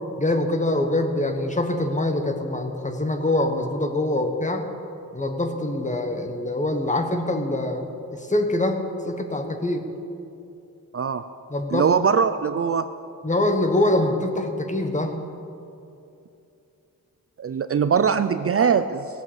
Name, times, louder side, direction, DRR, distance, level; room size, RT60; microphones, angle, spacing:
voice 1, 0.2-4.6 5.1-8.8 9.0-9.8 11.5-11.9 13.2-15.1, left 1 dB, 20° left, 5 dB, 1.3 m, -24 dB
voice 2, 11.7-12.9 17.4-19.1, right 6 dB, 40° right, 11 dB, 0.5 m, -21 dB
18.0 x 8.1 x 7.3 m, 2.7 s
wide cardioid pair, 95°, 35 cm